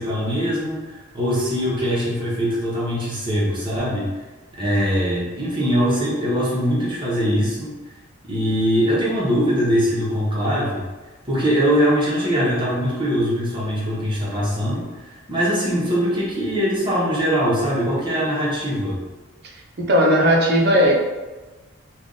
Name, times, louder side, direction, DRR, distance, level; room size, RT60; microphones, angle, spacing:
voice 1, 0.0-4.1 4.6-7.7 8.3-10.8 11.3-19.0, equal, 20° right, -7 dB, 1.0 m, -22 dB
voice 2, 19.5-21.0, equal, 50° right, 0 dB, 0.6 m, -17 dB
3.3 x 2.4 x 3.9 m, 1.3 s
head